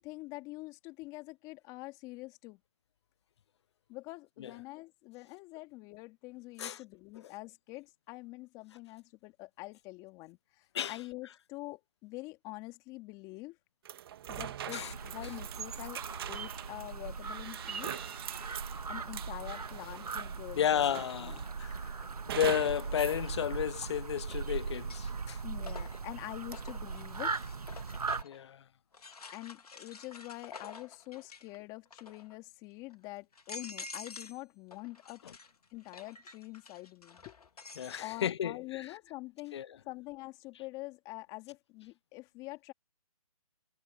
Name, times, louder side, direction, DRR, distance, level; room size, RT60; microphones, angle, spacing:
voice 1, 0.0-2.6 3.9-13.6 14.3-18.0 18.9-21.4 25.4-27.3 29.3-35.2 35.7-37.3 38.0-39.6 39.9-42.7, left 21 dB, 20° left, 2.4 m, -45 dB
sound 1, 13.8-20.5 20.9-21.5 22.3-23.2, right 11 dB, 40° right, 2.1 m, -43 dB
sound 2, 14.7-28.2, right 5 dB, 85° right, 2.1 m, -39 dB
voice 2, 20.5-22.0 22.3-25.4 28.2-28.6 35.2-35.3 37.8-38.9 39.5-39.8, left 9 dB, 45° left, 0.8 m, -33 dB
sound 3, 22.0-22.1 23.8-24.3 24.7-28.4 28.9-31.6 31.9-32.4 32.9-33.0 33.3-34.4 34.7-38.1, left 4 dB, 85° left, 3.1 m, -49 dB
hypercardioid pair, 155°, 19 cm